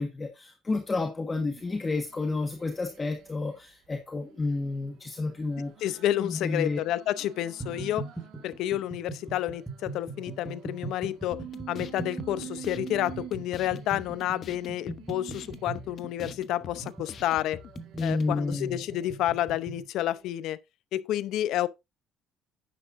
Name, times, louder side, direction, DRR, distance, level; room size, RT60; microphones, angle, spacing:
voice 1, 0.0-5.7 6.2-6.8 18.0-18.8, left 3 dB, 20° left, 1.4 m, -30 dB
sound 1, 1.6-3.6 4.1-8.6 9.1-16.0 16.6-19.5 20.0-20.3, right 11 dB, 65° right, 1.9 m, -48 dB
voice 2, 5.8-8.1 8.4-17.6 18.0-20.6 20.9-21.7, left 13 dB, 70° left, 0.7 m, -30 dB
sound 2, 7.6-19.9, right 3 dB, ahead, 2.5 m, -41 dB
sound 3, 11.3-18.3, left 8 dB, 40° left, 0.9 m, -46 dB
10.0 x 9.9 x 2.6 m
cardioid pair, 145°, 0 cm